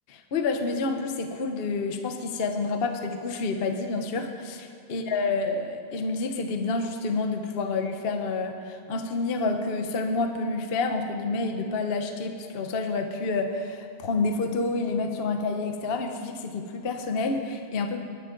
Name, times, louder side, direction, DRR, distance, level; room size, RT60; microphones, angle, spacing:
voice 1, 0.1-18.0, left 3 dB, 50° left, 5 dB, 0.7 m, -28 dB
20.5 x 10.0 x 3.9 m, 2.4 s
omnidirectional pair, 2.4 m